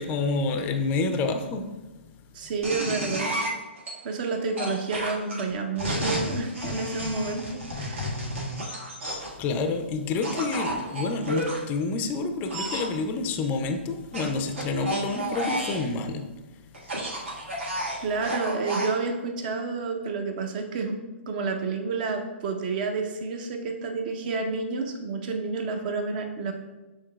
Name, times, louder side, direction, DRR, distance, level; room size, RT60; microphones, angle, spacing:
voice 1, 0.0-1.7 9.4-16.3, left 3 dB, 25° left, 6 dB, 0.4 m, -28 dB
voice 2, 2.3-3.3 4.0-8.2 18.0-20.9 21.3-26.5, right 4 dB, 45° right, 4 dB, 0.6 m, -30 dB
sound 1, 2.6-3.9 4.6-9.4 10.2-11.6 12.5-12.9 14.1-15.9 16.7-18.9, equal, 75° right, 1.4 m, -31 dB
6.3 x 3.5 x 2.2 m, 1.1 s
figure-of-eight pair, 125°, 7 cm